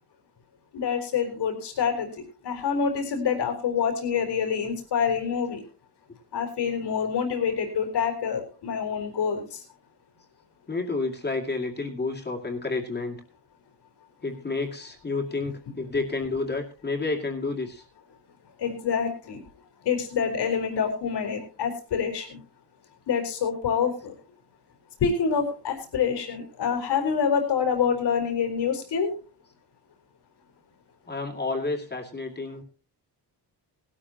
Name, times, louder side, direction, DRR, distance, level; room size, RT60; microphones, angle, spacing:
voice 1, 0.7-2.1 2.4-5.6 6.3-9.6 18.6-19.4 19.8-22.4 23.1-24.1 25.0-29.1, left 6 dB, 75° left, 4 dB, 4.2 m, -26 dB
voice 2, 10.7-13.2 14.2-17.8 31.1-32.6, left 3 dB, 25° left, 0 dB, 2.4 m, -30 dB
19.0 x 12.5 x 2.9 m, 0.36 s
wide cardioid pair, 140°, 41 cm